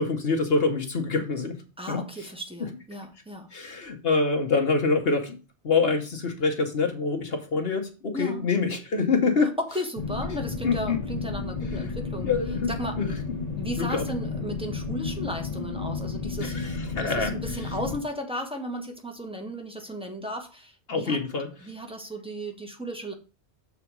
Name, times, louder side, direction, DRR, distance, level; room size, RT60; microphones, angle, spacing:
voice 1, 0.0-1.6 1.9-2.0 2.6-2.7 3.5-5.4 5.6-9.5 10.6-11.0 12.2-13.1 13.8-14.0 16.4-17.3 20.9-21.5, left 4 dB, 55° left, 4 dB, 1.3 m, -25 dB
voice 2, 1.8-3.5 8.1-8.4 9.6-12.3 12.7-13.0 13.6-21.2 21.6-23.1, equal, 5° right, 3 dB, 1.2 m, -35 dB
sound 1, 10.0-18.0, left 4 dB, 35° left, 1.2 m, -32 dB
7.1 x 4.2 x 6.0 m, 0.33 s
omnidirectional pair, 1.2 m